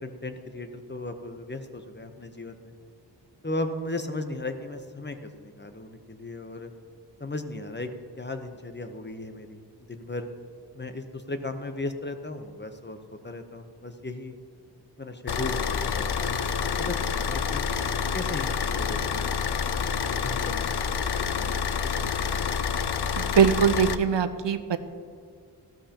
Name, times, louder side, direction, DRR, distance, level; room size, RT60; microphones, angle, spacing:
voice 1, 0.0-2.7 3.4-6.7 7.2-7.9 8.2-9.6 9.9-10.3 10.7-13.0 13.2-14.4 15.0-17.6 18.1-19.6 20.2-21.5 21.8-21.9 22.2-22.4, left 2 dB, 25° left, 7 dB, 0.9 m, -36 dB
Car / Idling, 15.3-23.9, left 6 dB, 65° left, 0.6 m, -28 dB
voice 2, 23.2-24.8, right 7 dB, 85° right, 11 dB, 0.7 m, -22 dB
15.5 x 13.0 x 2.9 m, 2.2 s
wide cardioid pair, 70°, 42 cm